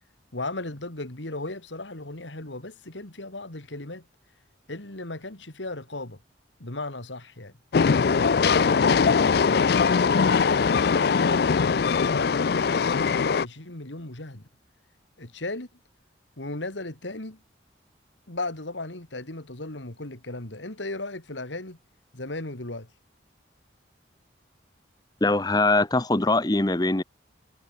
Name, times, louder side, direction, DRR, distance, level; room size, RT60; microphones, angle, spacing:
voice 1, 0.3-4.1 4.7-6.2 6.6-7.5 8.0-14.5 15.2-15.7 16.4-17.4 18.3-21.8 22.1-22.9, left 2 dB, 80° left, 3.0 m, -36 dB
Train, 7.7-13.4, left 5 dB, 55° left, 0.4 m, -21 dB
voice 2, 25.2-27.0, left 2 dB, 20° left, 1.0 m, -22 dB
head